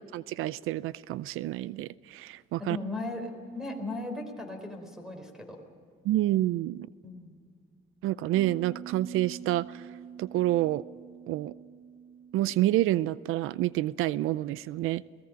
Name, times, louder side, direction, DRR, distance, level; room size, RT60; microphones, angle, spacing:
voice 1, 0.1-2.8 6.0-6.9 8.0-9.9 10.2-10.8 11.3-11.5 12.3-15.0, right 15 dB, 85° right, 18 dB, 0.5 m, -28 dB
voice 2, 2.6-5.6 7.0-7.4, left 2 dB, ahead, 4 dB, 4.4 m, -37 dB
sound 1, 8.3-14.6, right 9 dB, 40° right, 1.8 m, -46 dB
29.5 x 19.0 x 5.2 m, 2.1 s
cardioid pair, 135°, 21 cm